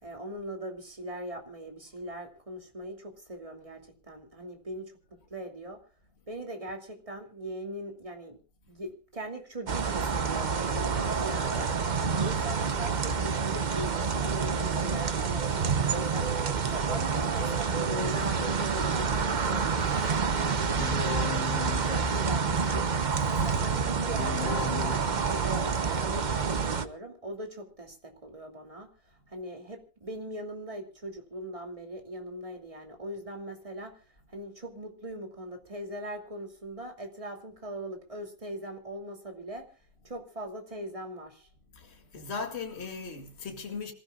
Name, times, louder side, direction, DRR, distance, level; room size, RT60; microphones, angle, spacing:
voice 1, 0.0-5.8 6.3-8.4 8.7-21.4 21.7-22.9 23.3-39.7 40.0-41.5, right 1 dB, 15° right, 2.7 m, -40 dB
sound 1, 9.7-26.9, right 5 dB, 80° right, 0.4 m, -28 dB
Keyboard (musical), 17.4-25.7, left 8 dB, 55° left, 1.7 m, -40 dB
voice 2, 41.7-43.9, left 4 dB, 35° left, 2.5 m, -38 dB
27.0 x 15.5 x 2.4 m
omnidirectional pair, 2.1 m